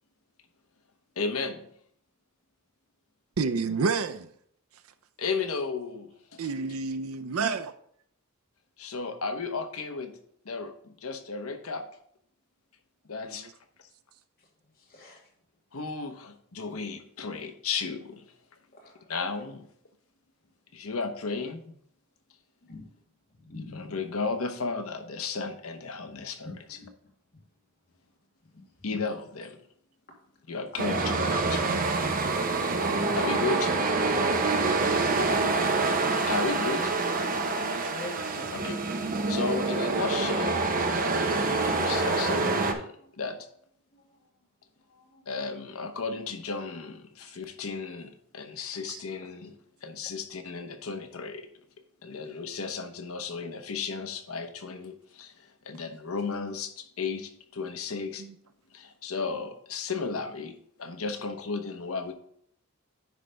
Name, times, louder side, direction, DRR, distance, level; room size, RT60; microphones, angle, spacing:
voice 1, 1.2-1.7 5.2-6.4 8.8-10.1 10.4-11.8 13.1-13.5 15.7-18.2 19.1-19.6 20.7-21.6 23.7-26.8 28.8-29.6 30.5-31.7 33.2-33.7 36.3-36.9 38.5-38.7 39.3-40.6 41.7-43.4 45.3-49.5 49.8-51.5 52.0-55.3 55.6-58.2 58.7-60.5 60.8-62.1, left 4 dB, 75° left, 0.9 m, -34 dB
voice 2, 3.4-4.3 6.4-7.7 13.3-13.4 37.6-37.9 48.9-49.0 58.2-58.3, right 4 dB, 75° right, 0.5 m, -30 dB
voice 3, 14.7-15.3 18.7-19.1 22.6-23.0 23.3-24.0 26.0-26.2 26.4-26.9 27.3-27.4 28.5-29.1 30.1-30.2 37.9-38.7 43.0-43.1 43.9-44.0 44.9-45.2, left 2 dB, 45° left, 2.0 m, -46 dB
sound 1, 30.8-42.7, right 3 dB, 40° right, 0.8 m, -26 dB
9.6 x 3.4 x 5.1 m
head